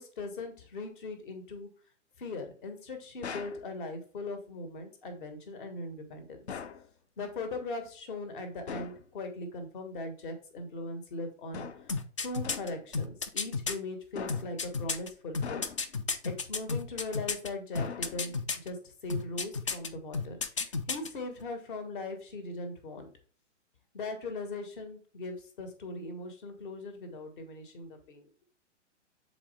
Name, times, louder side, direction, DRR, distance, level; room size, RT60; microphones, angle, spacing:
voice 1, 0.0-1.7 2.2-6.4 7.2-15.7 16.2-18.3 18.6-23.1 23.9-28.3, left 2 dB, 45° left, 7 dB, 1.6 m, -40 dB
sound 1, 3.2-3.7 6.5-6.9 8.7-9.1 11.5-12.0 12.4-12.8 14.2-14.6 15.4-16.0 17.8-18.4, left 6 dB, 60° left, 0.7 m, -41 dB
sound 2, 11.9-13.8 14.3-17.5 17.8-18.7 19.1-19.9 20.1-21.1 21.4-21.5, left 4 dB, 25° left, 0.4 m, -32 dB
7.2 x 4.2 x 3.4 m, 0.42 s
figure-of-eight pair, 120°, 36 cm